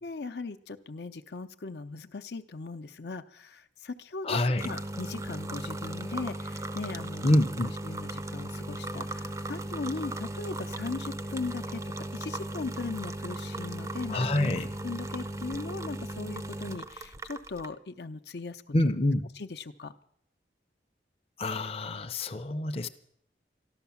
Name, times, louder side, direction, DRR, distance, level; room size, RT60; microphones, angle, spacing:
voice 1, 0.0-7.3 7.6-11.8 12.1-14.5 14.8-18.6 19.4-19.9, left 3 dB, 70° left, 9 dB, 0.6 m, -38 dB
voice 2, 4.2-4.7 7.2-7.7 14.1-14.7 18.7-19.3 21.4-22.9, left 1 dB, 35° left, 7 dB, 0.6 m, -26 dB
sound 1, 4.6-17.7, right 1 dB, 20° right, 0.5 m, -37 dB
13.5 x 12.0 x 7.0 m, 0.70 s
head